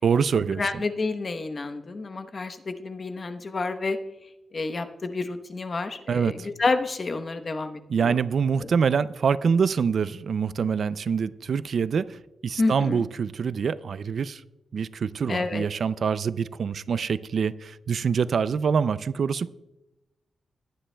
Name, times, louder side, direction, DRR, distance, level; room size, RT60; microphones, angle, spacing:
voice 1, 0.0-0.8 6.1-6.5 7.9-14.4 14.7-19.5, right 6 dB, 65° right, 16 dB, 0.4 m, -25 dB
voice 2, 0.6-4.0 4.5-8.2 12.6-13.0 15.3-15.6, left 3 dB, 40° left, 7 dB, 0.9 m, -29 dB
21.5 x 9.8 x 2.2 m, 0.95 s
wide cardioid pair, 105°, 0 cm